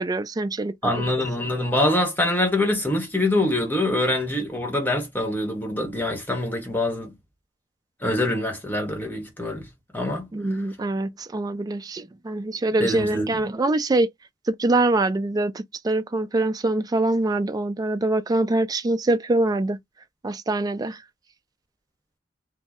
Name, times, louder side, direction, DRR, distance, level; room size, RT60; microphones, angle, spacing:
voice 1, 0.0-0.9 10.3-14.1 14.5-19.8 20.2-21.0, right 2 dB, 20° right, 0.3 m, -24 dB
voice 2, 0.8-7.1 8.0-9.7 9.9-10.3 12.8-13.3, left 1 dB, 10° left, 1.1 m, -24 dB
2.7 x 2.0 x 3.5 m
head